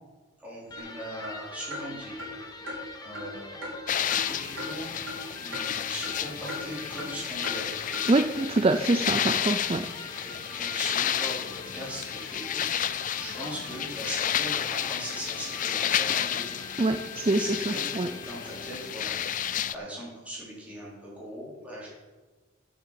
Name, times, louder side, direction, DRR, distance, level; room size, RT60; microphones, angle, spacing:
voice 1, 0.4-2.2 3.0-3.7 4.1-4.9 5.4-7.9 10.2-16.7 17.3-17.9 18.2-19.2 19.7-21.9, right 1 dB, 5° right, -7 dB, 4.3 m, -40 dB
Electric guitar, 0.7-19.0, left 2 dB, 20° left, 1.2 m, -45 dB
sound 1, 0.8-0.9 1.2-1.4 1.7-1.9 2.2-2.3 2.7-2.8 3.1-3.3 3.6-3.8 4.1-4.3 4.6-4.7 5.1-5.2 5.5-5.6 6.0-6.1 6.5-6.6 7.0-7.1 7.4-7.6 7.9-8.1, left 1 dB, 70° right, 3.3 m, -37 dB
sound 2, 3.9-19.7, left 10 dB, 40° left, 0.4 m, -31 dB
voice 2, 8.1-9.9 16.8-17.4 18.0-18.1, right 2 dB, 25° right, 8 dB, 0.4 m, -24 dB
8.7 x 7.8 x 7.6 m, 1.3 s
head